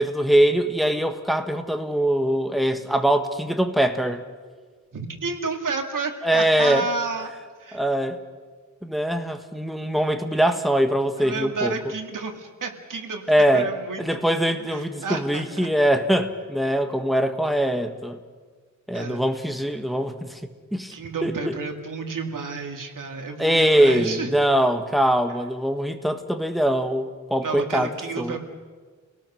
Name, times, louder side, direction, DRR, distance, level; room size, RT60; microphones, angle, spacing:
voice 1, 0.0-4.2 6.2-6.9 7.7-8.2 8.8-11.8 13.3-13.7 14.0-18.2 18.9-20.4 20.7-20.9 21.2-21.5 23.4-28.4, right 1 dB, ahead, 6 dB, 1.5 m, -22 dB
voice 2, 4.9-7.3 7.6-7.8 11.2-13.2 13.5-15.7 18.9-19.2 20.9-24.3 27.4-28.4, right 4 dB, 80° right, 4 dB, 2.3 m, -31 dB
29.5 x 18.0 x 6.3 m, 1.5 s
wide cardioid pair, 115°, 32 cm